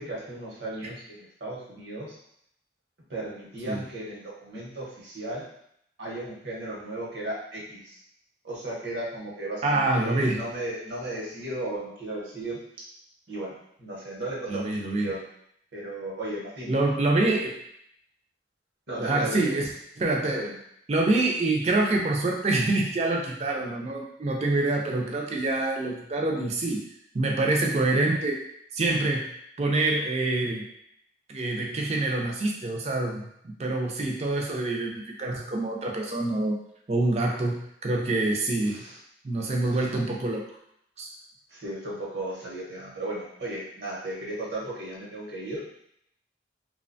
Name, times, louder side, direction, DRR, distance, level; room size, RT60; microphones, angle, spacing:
voice 1, 0.0-2.2 3.1-5.5 6.0-8.0 8.4-12.6 13.3-15.3 15.7-16.7 18.9-19.6 20.3-20.5 38.6-39.0 39.7-40.1 41.5-45.7, right 1 dB, 75° right, -4 dB, 0.9 m, -35 dB
voice 2, 9.6-10.4 14.5-15.1 16.7-17.6 19.0-19.7 20.0-20.5 20.9-26.9 27.1-28.4 28.7-29.3 29.6-30.6 31.3-36.6 36.9-38.8 39.2-40.4 41.0-41.1, right 2 dB, 35° right, 1 dB, 0.4 m, -26 dB
2.7 x 2.2 x 2.6 m, 0.72 s
head